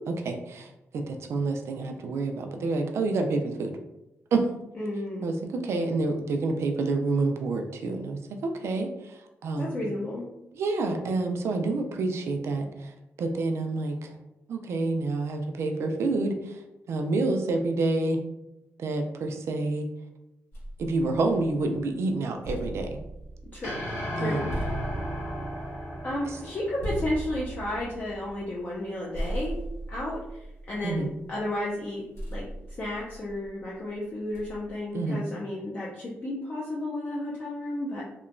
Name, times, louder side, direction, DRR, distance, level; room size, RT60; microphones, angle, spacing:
voice 1, 0.1-3.7 4.3-4.4 5.2-9.9 10.5-14.1 14.5-16.6 16.9-18.2 18.8-19.9 20.8-22.9 24.2-24.5 26.3-26.4 30.8-31.1 34.9-35.2, right 3 dB, 65° right, 4 dB, 0.4 m, -28 dB
voice 2, 4.8-5.2 9.6-10.3 23.5-23.8 24.1-24.4 26.0-29.6 29.9-32.0 32.3-32.4 32.8-38.0, left 1 dB, 35° left, -6 dB, 0.5 m, -32 dB
sound 1, 20.5-21.8 22.2-28.9 29.1-31.4 32.1-33.6 34.3-34.8, right 1 dB, 60° left, 1.2 m, -38 dB
sound 2, 23.6-28.0, equal, 85° left, 1.4 m, -36 dB
2.9 x 2.2 x 2.4 m, 0.90 s
wide cardioid pair, 155°, 5 cm